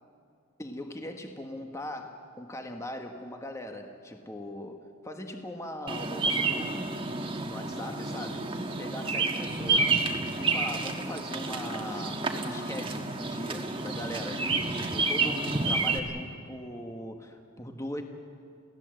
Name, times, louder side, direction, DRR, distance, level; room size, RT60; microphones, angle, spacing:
voice 1, 0.6-7.0 7.4-10.0 10.4-18.0, left 1 dB, 15° left, 4 dB, 1.2 m, -40 dB
Bird vocalization bird call bird song, 5.9-16.0, right 3 dB, 25° right, 1.4 m, -30 dB
28.5 x 17.0 x 7.8 m, 2.3 s
head